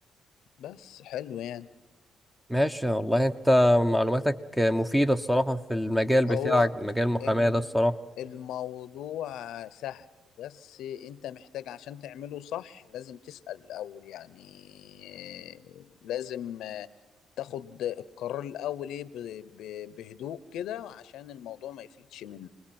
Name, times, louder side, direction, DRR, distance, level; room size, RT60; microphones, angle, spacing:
voice 1, 0.6-1.7 6.3-6.7 7.2-7.6 8.2-10.1 10.4-16.9 17.4-22.5, left 11 dB, 85° left, 16 dB, 0.8 m, -38 dB
voice 2, 2.5-7.9, equal, 5° right, 10 dB, 1.1 m, -24 dB
28.0 x 20.5 x 6.0 m, 1.2 s
cardioid pair, 90°, 0 cm